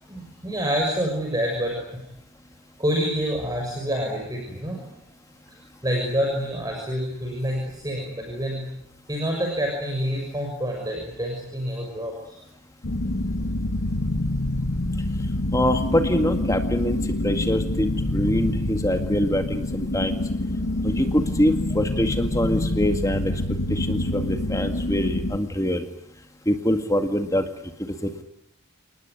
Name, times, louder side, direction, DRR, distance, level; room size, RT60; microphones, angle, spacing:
voice 1, 0.0-2.1 2.8-5.0 5.5-8.7 9.1-12.5, equal, 15° right, 0 dB, 6.7 m, -27 dB
sound 1, 12.8-25.4, left 1 dB, 75° left, 1.5 m, -26 dB
voice 2, 15.5-17.0 17.2-20.2 20.8-23.3 23.7-25.9 26.5-27.4 27.8-28.2, left 1 dB, 15° left, 6 dB, 2.0 m, -24 dB
29.5 x 20.0 x 9.8 m, 0.75 s
head